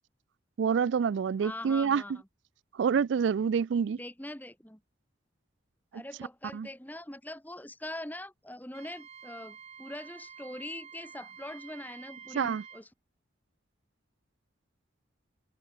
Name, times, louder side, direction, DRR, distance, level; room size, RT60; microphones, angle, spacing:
voice 1, 0.6-2.0 2.8-4.0 6.5-6.7 12.3-12.6, right 6 dB, 75° right, 0.3 m, -27 dB
voice 2, 1.4-2.1 4.0-4.8 5.9-12.9, left 1 dB, 10° left, 2.3 m, -42 dB
Wind instrument woodwind instrument, 8.7-12.8, right 7 dB, 35° right, 5.0 m, -49 dB
head